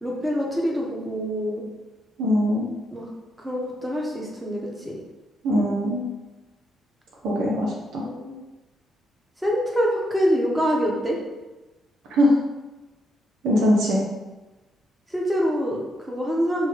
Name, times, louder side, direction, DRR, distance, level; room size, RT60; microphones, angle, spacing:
voice 1, 0.0-1.6 2.9-3.1 3.4-5.0 8.0-8.4 9.4-11.2 15.1-16.7, equal, 10° right, -3 dB, 1.0 m, -25 dB
voice 2, 2.2-2.6 5.4-6.0 7.2-8.1 12.1-12.4 13.4-14.0, equal, 70° right, -3 dB, 0.6 m, -21 dB
3.0 x 2.2 x 3.7 m, 1.1 s
hypercardioid pair, 50°, 0 cm